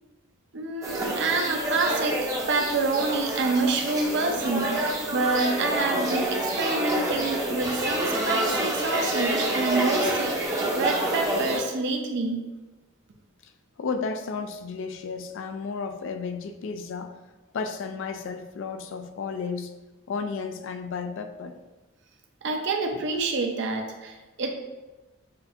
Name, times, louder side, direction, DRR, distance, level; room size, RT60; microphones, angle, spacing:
voice 1, 0.5-12.5 22.4-24.5, right 3 dB, 55° right, 2 dB, 0.6 m, -27 dB
sound 1, 0.8-11.6, right 1 dB, 15° right, 0.6 m, -27 dB
voice 2, 13.8-17.1 17.5-19.7 20.1-21.6, left 5 dB, 60° left, 8 dB, 0.3 m, -33 dB
6.7 x 2.6 x 2.6 m, 1.1 s
head